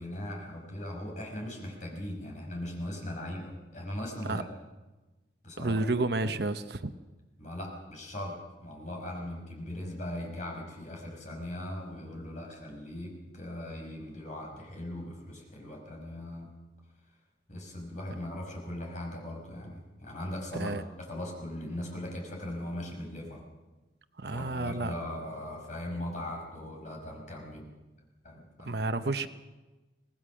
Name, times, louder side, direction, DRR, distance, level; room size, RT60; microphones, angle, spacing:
voice 1, 0.0-4.4 5.4-5.8 7.4-16.5 17.5-23.5 24.3-27.7 28.2-28.8, left 1 dB, 40° left, 0 dB, 5.6 m, -39 dB
voice 2, 5.6-6.9 20.5-20.8 24.2-24.9 28.6-29.3, right 2 dB, 65° right, 11 dB, 0.9 m, -30 dB
24.5 x 18.0 x 6.4 m, 1.2 s
head